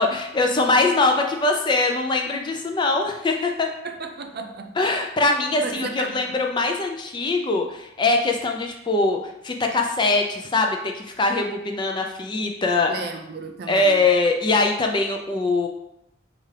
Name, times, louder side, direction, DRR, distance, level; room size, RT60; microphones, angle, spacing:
voice 1, 0.0-3.7 4.8-9.2 9.4-12.9 13.7-15.7, left 3 dB, 20° left, 3 dB, 0.3 m, -22 dB
voice 2, 3.8-4.7 5.6-6.2 12.9-14.1, right 4 dB, 50° right, 6 dB, 0.4 m, -34 dB
5.4 x 2.4 x 3.2 m, 0.84 s
head